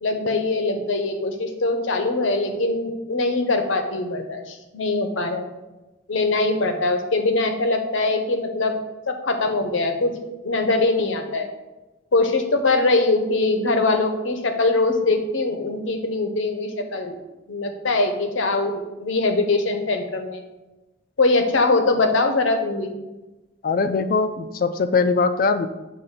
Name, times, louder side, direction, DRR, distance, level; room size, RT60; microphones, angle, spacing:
voice 1, 0.0-5.5 6.1-8.7 9.1-10.1 10.4-11.5 12.1-17.1 17.5-20.4 21.2-22.9, left 2 dB, 85° left, 6 dB, 0.7 m, -22 dB
voice 2, 23.6-25.7, left 4 dB, 45° left, 10 dB, 0.3 m, -21 dB
6.6 x 2.6 x 5.6 m, 1.1 s
head